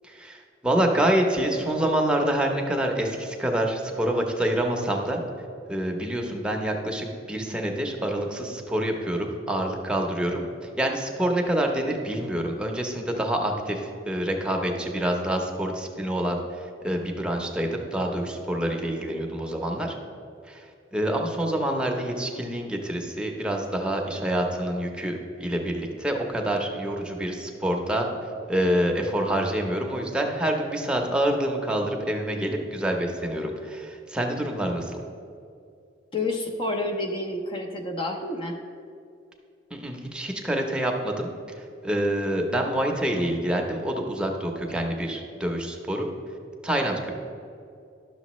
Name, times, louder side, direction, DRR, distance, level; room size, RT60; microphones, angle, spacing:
voice 1, 0.0-5.2 5.7-10.4 10.8-19.9 20.5-28.1 28.5-35.0 39.7-41.3 41.6-46.1 46.6-47.1, right 1 dB, 5° right, 1 dB, 0.7 m, -27 dB
voice 2, 36.1-38.6, left 2 dB, 30° left, 3 dB, 0.6 m, -29 dB
11.5 x 6.5 x 3.1 m, 2.5 s
head